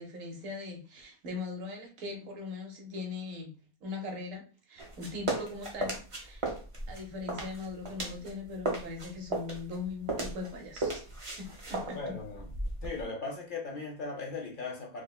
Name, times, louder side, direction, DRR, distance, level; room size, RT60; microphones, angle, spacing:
voice 1, 0.0-4.4 4.7-6.4 6.9-11.0 11.4-12.1, left 3 dB, 65° right, 1.2 m, -40 dB
sound 1, 4.8-8.3 8.6-13.0, right 2 dB, 45° right, 0.4 m, -36 dB
voice 2, 11.9-12.4 12.8-15.0, left 3 dB, 55° left, 0.6 m, -38 dB
4.8 x 2.1 x 2.2 m
omnidirectional pair, 1.6 m